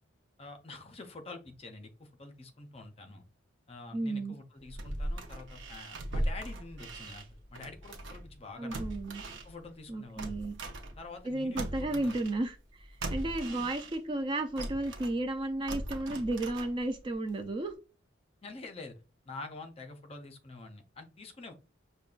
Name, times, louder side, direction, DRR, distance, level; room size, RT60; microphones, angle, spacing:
voice 1, 0.4-3.2 3.7-8.8 9.4-10.3 11.0-12.1 13.4-13.7 18.4-19.0 19.3-21.5, left 3 dB, 30° left, 5 dB, 0.5 m, -47 dB
voice 2, 3.9-4.4 8.6-9.2 9.9-10.5 11.3-12.6 13.1-17.7, right 2 dB, 25° right, 7 dB, 0.3 m, -33 dB
sound 1, 4.6-8.3 8.7-11.3 11.6-14.2 14.6-17.1 17.4-17.5, right 1 dB, 70° right, 0.6 m, -39 dB
5.2 x 2.2 x 2.4 m, 0.32 s
head